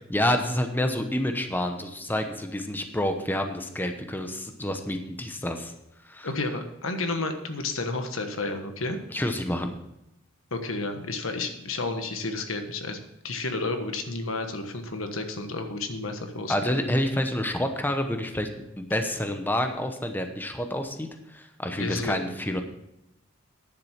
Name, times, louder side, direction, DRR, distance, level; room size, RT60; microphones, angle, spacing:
voice 1, 0.1-5.7 6.0-6.3 9.1-9.7 16.5-18.5 18.8-22.6, left 1 dB, 10° left, 5 dB, 0.9 m, -28 dB
voice 2, 6.2-9.0 10.5-16.7 21.8-22.2, left 3 dB, 85° left, 6 dB, 1.3 m, -31 dB
10.0 x 7.5 x 5.7 m, 0.84 s
head